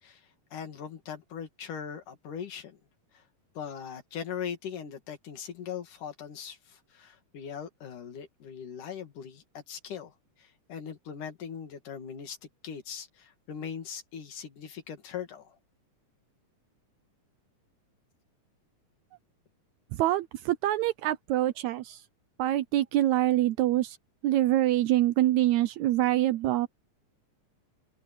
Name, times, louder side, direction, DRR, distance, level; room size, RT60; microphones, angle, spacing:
voice 1, 0.0-2.8 3.1-3.2 3.6-12.4 12.6-15.6, left 8 dB, 75° left, 3.9 m, -40 dB
voice 2, 19.9-22.0 22.4-24.0 24.2-26.7, right 14 dB, 75° right, 1.8 m, -25 dB
omnidirectional pair, 3.7 m